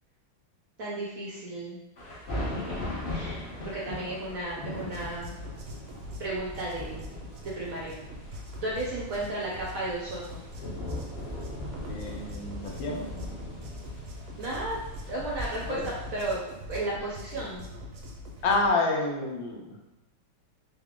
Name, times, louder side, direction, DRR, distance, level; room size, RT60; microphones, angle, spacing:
voice 1, 0.8-1.8 2.5-5.3 6.2-7.0 7.4-8.0 8.6-10.4 14.4-14.8 15.1-16.4 16.7-17.6, right 2 dB, 65° right, -5 dB, 0.8 m, -34 dB
sound 1, 2.0-16.2, left 1 dB, 60° left, 0.7 m, -39 dB
sound 2, 4.6-18.7, left 1 dB, 90° right, 1.6 m, -43 dB
voice 2, 11.9-13.1 15.7-15.8 18.4-19.8, left 3 dB, 75° left, -1 dB, 1.4 m, -28 dB
3.9 x 2.2 x 3.5 m, 0.94 s
omnidirectional pair, 2.2 m